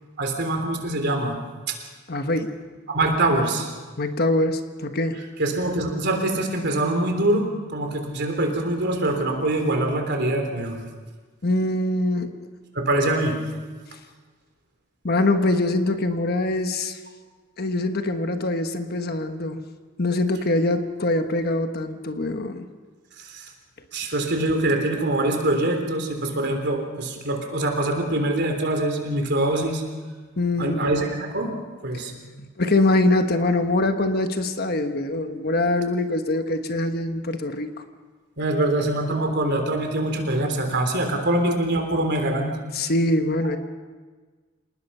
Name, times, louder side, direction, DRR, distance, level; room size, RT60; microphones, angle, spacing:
voice 1, 0.2-1.4 1.7-1.8 2.9-3.7 5.4-10.8 12.7-13.3 23.2-23.5 23.9-29.8 30.6-31.5 31.8-32.1 38.4-42.5, right 1 dB, 55° right, 3 dB, 3.5 m, -24 dB
voice 2, 2.1-2.5 4.0-5.2 11.4-12.4 15.0-17.0 17.6-19.6 20.0-22.7 30.4-30.9 32.2-37.7 42.7-43.6, left 2 dB, 45° left, 7 dB, 1.3 m, -23 dB
27.0 x 19.5 x 5.6 m, 1.4 s
head